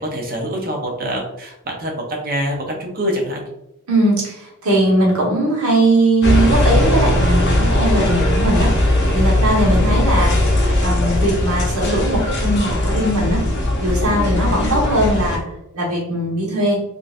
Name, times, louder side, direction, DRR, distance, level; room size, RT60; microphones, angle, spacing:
voice 1, 0.0-3.4 9.5-10.0, equal, 40° right, 0 dB, 0.7 m, -25 dB
voice 2, 3.9-8.9 9.1-10.4 10.8-13.4 13.8-16.8, right 1 dB, 80° right, -3 dB, 1.2 m, -19 dB
sound 1, 6.2-15.4, left 1 dB, 50° left, 0.7 m, -18 dB
3.7 x 2.6 x 2.4 m, 0.85 s
head